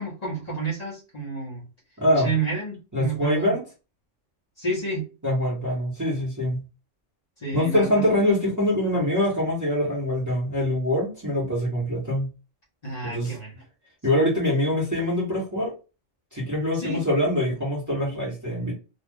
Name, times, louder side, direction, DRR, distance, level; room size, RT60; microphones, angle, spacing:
voice 1, 0.0-1.6 2.2-3.5 4.6-5.0 7.4-8.2 12.8-13.6 14.1-14.2 16.7-17.0, right 3 dB, 35° left, -5 dB, 1.2 m, -30 dB
voice 2, 2.0-2.3 2.9-3.6 5.2-6.6 7.5-12.3 13.0-13.3 14.0-15.7 16.3-18.7, left 1 dB, 15° right, -5 dB, 1.1 m, -24 dB
2.4 x 2.4 x 3.6 m, 0.31 s
omnidirectional pair, 1.3 m